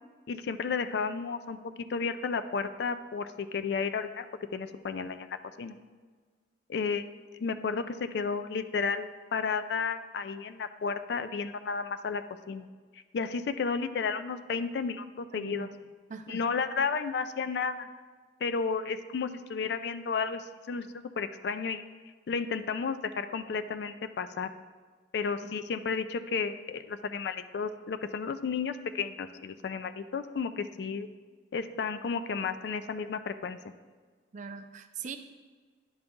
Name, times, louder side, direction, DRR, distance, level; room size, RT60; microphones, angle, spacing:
voice 1, 0.3-1.6 1.9-4.3 4.5-5.8 6.7-7.1 7.4-12.2 12.5-12.7 13.1-15.7 16.3-17.9 18.4-21.8 22.3-24.5 25.1-31.1 31.5-33.6, left 5 dB, 65° left, 11 dB, 0.3 m, -32 dB
voice 2, 15.3-15.8 16.1-16.4 25.4-25.5 34.3-35.2, right 5 dB, 40° right, 8 dB, 0.4 m, -41 dB
10.5 x 3.9 x 3.6 m, 1.5 s
head